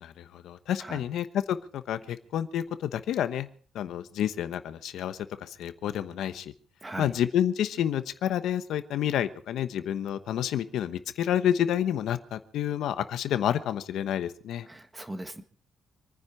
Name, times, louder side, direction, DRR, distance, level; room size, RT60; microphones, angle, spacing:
voice 1, 0.0-3.5 3.7-6.5 7.0-14.7, left 10 dB, 75° left, 11 dB, 1.0 m, -29 dB
voice 2, 6.8-7.1 14.7-15.4, right 1 dB, 10° right, 8 dB, 1.5 m, -39 dB
26.5 x 10.0 x 4.6 m, 0.43 s
cardioid pair, 160°, 0 cm